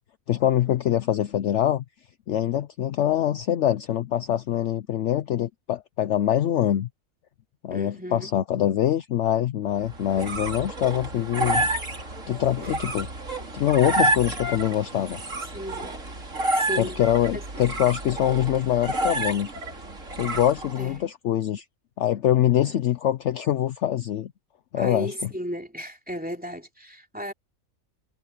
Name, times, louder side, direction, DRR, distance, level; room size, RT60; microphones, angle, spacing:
voice 1, 0.3-1.8 2.3-6.9 7.6-11.7 12.3-13.1 13.5-15.2 16.8-19.5 20.2-21.6 22.0-24.3 24.7-25.3, left 11 dB, 65° left, 0.9 m, -24 dB
voice 2, 7.7-8.3 14.3-14.6 15.5-16.0 16.5-17.0 17.3-17.4 20.8-21.1 22.5-22.8 24.7-27.3, equal, 5° right, 3.0 m, -35 dB
sound 1, 9.8-21.0, right 2 dB, 65° right, 4.1 m, -29 dB
omnidirectional pair, 1.4 m